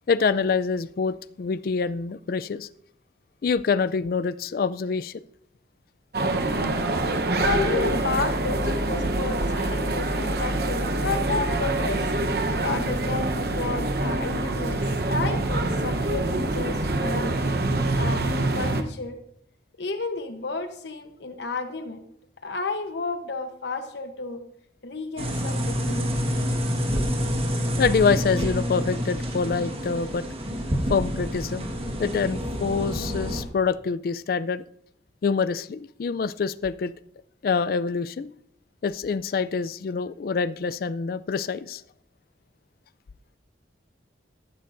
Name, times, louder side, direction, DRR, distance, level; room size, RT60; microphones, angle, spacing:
voice 1, 0.1-2.7 3.4-5.1 27.8-30.3 30.9-31.7 32.0-34.6 35.2-36.9 37.4-38.3 38.8-41.8, left 5 dB, 55° left, 15 dB, 0.3 m, -26 dB
sound 1, 6.1-18.8, right 2 dB, 55° right, 0.9 m, -25 dB
voice 2, 7.4-12.1 12.6-14.8 15.1-17.4 18.0-19.2 19.8-22.0 22.4-24.4 24.8-26.2, left 3 dB, 70° left, 7 dB, 0.9 m, -31 dB
sound 2, 25.2-33.4, equal, 30° right, 1.5 m, -28 dB
13.5 x 12.5 x 2.6 m, 0.73 s
head